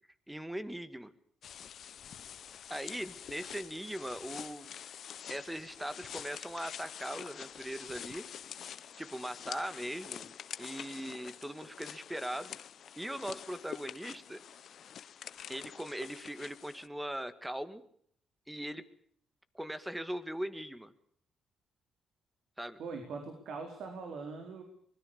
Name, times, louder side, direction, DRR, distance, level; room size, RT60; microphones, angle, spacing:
voice 1, 0.3-1.1 2.7-4.7 5.3-8.3 9.0-12.6 13.0-14.4 15.5-17.8 18.5-18.8 19.5-20.9 22.6-22.8, right 1 dB, 5° right, 13 dB, 2.0 m, -40 dB
sound 1, 1.4-16.9, left 9 dB, 60° left, 1.0 m, -47 dB
voice 2, 22.8-24.6, right 4 dB, 70° right, 4 dB, 4.4 m, -42 dB
24.5 x 21.0 x 7.0 m, 0.63 s
cardioid pair, 90°, 0 cm